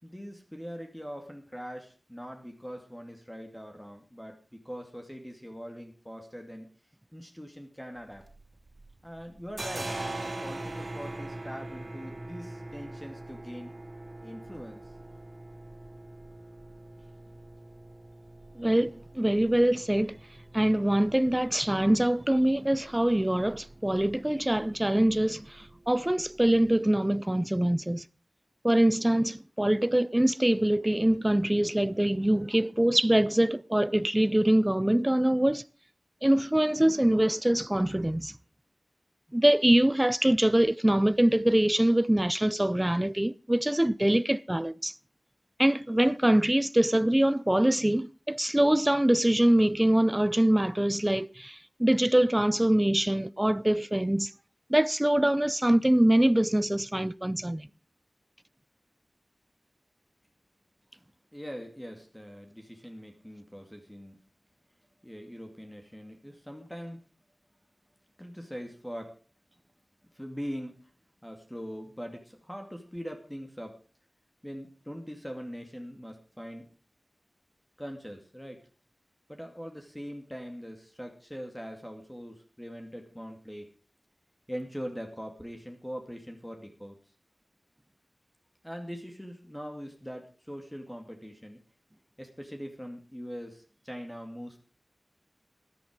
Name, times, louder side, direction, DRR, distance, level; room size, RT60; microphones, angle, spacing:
voice 1, 0.0-6.7 7.1-8.2 9.0-13.7 14.2-14.9 61.3-64.2 65.0-67.0 68.2-69.2 70.1-70.9 71.2-73.8 74.4-76.7 77.8-78.6 79.3-83.7 84.5-87.0 88.6-91.6 92.2-94.6, equal, 10° left, 2.4 m, -42 dB
sound 1, 8.0-8.9 9.2-26.7, right 2 dB, 55° right, 2.7 m, -43 dB
voice 2, 18.6-20.2 20.5-28.0 28.6-35.6 36.2-38.3 39.3-44.9 45.6-54.3 54.7-57.7, right 1 dB, 20° right, 0.5 m, -24 dB
13.5 x 11.0 x 5.1 m
wide cardioid pair, 45°, 0 cm